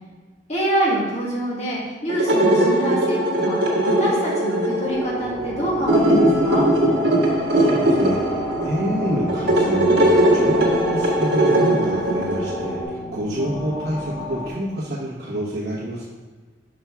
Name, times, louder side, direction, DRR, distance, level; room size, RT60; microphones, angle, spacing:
voice 1, 0.5-6.7, right 1 dB, 40° left, -5 dB, 1.6 m, -25 dB
sound 1, 2.1-12.8, right 1 dB, 75° right, 1.6 m, -20 dB
sound 2, 4.8-14.5, left 1 dB, 20° left, 1.5 m, -33 dB
voice 2, 7.5-16.0, equal, 60° right, -9 dB, 1.2 m, -27 dB
5.7 x 5.4 x 3.6 m, 1.4 s
head